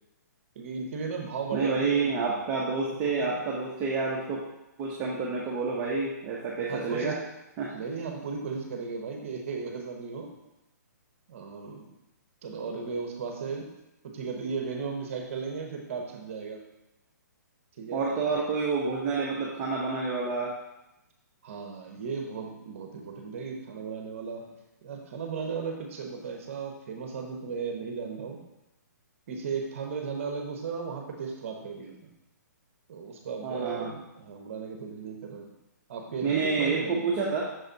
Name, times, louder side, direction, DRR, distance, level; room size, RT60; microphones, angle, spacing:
voice 1, 0.5-2.2 3.2-3.3 6.7-7.2 7.7-10.3 11.3-11.9 12.4-13.7 14.1-16.6 17.8-18.0 18.3-18.4 21.4-24.4 24.8-28.4 29.3-31.9 32.9-35.5 35.9-36.9, right 5 dB, 45° right, 2 dB, 1.0 m, -35 dB
voice 2, 1.5-4.4 4.8-7.2 7.6-7.7 17.9-20.5 33.4-33.9 36.2-37.4, right 4 dB, 20° right, -5 dB, 0.8 m, -28 dB
6.3 x 4.0 x 4.0 m, 0.93 s
hypercardioid pair, 160°, 10 cm